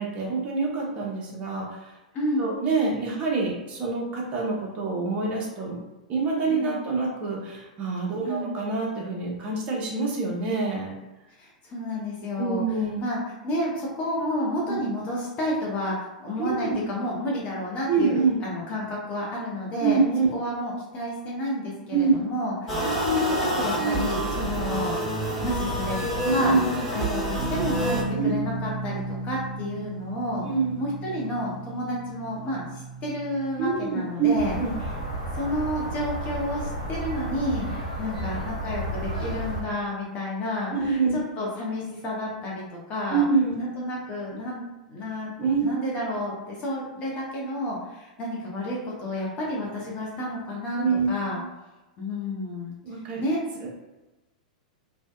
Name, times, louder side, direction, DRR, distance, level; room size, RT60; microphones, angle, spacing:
voice 1, 0.0-1.9 2.4-5.8 6.1-11.0 12.4-13.0 14.7-14.8 16.4-16.8 17.9-18.4 19.8-20.3 21.9-22.2 26.4-26.8 28.1-28.3 30.4-30.8 33.6-34.7 40.7-41.1 43.1-43.5 45.4-45.8 50.7-51.1 51.4-51.5 52.8-53.2 53.6-53.7, right 4 dB, 35° right, -2 dB, 0.7 m, -26 dB
voice 2, 2.1-2.6 6.5-6.8 8.2-8.5 11.4-12.6 13.0-20.0 20.3-25.1 25.4-26.6 26.9-30.4 30.8-34.6 35.3-37.7 38.0-41.0 41.4-42.6 42.9-43.3 43.6-45.3 45.6-51.4 52.0-52.8 53.2-53.4, left 1 dB, 30° left, -4 dB, 0.7 m, -30 dB
sound 1, 22.7-28.0, right 1 dB, ahead, 1.4 m, -27 dB
sound 2, 27.4-37.9, right 2 dB, 65° right, 0.5 m, -37 dB
sound 3, 34.4-39.6, right 1 dB, 75° left, 0.7 m, -32 dB
2.6 x 2.1 x 2.3 m, 1.1 s
figure-of-eight pair, 100°, 4 cm